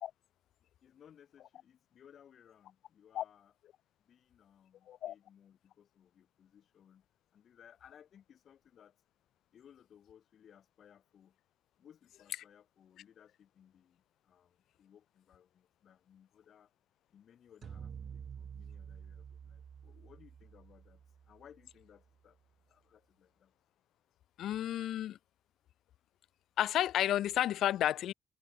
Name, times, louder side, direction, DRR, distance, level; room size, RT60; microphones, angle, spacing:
voice 1, 0.8-3.5 4.0-7.1 7.3-9.0 9.5-11.4 11.8-16.7 17.1-21.0 21.3-22.4 22.7-23.5, left 9 dB, 55° left, 7.8 m, -62 dB
sound 1, 17.6-22.0, right 7 dB, 45° right, 1.9 m, -49 dB
voice 2, 24.4-25.2 26.6-28.1, left 12 dB, 85° left, 1.7 m, -31 dB
cardioid pair, 150°, 0 cm